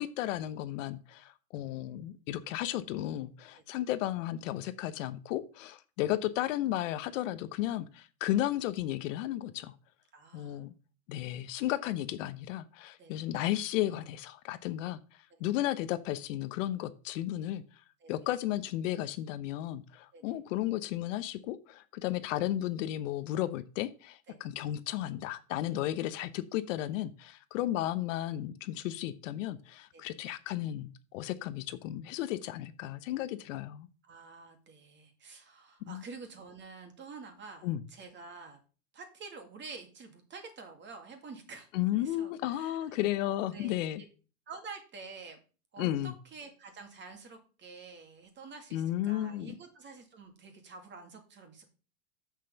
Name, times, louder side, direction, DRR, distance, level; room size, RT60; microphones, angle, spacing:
voice 1, 0.0-9.7 10.3-10.7 11.1-15.0 15.4-17.6 18.1-33.9 35.9-36.0 37.6-37.8 41.7-44.0 45.8-46.1 48.7-49.5, left 13 dB, 60° left, 0.9 m, -34 dB
voice 2, 10.1-10.6 13.0-13.1 18.0-18.1 20.1-20.2 24.3-24.4 25.7-25.8 29.9-30.0 34.0-38.6 38.9-42.8 43.5-44.1 44.5-45.4 45.7-51.7, right 4 dB, 25° right, 2.4 m, -48 dB
6.7 x 6.3 x 6.9 m
supercardioid pair, 130°, 43 cm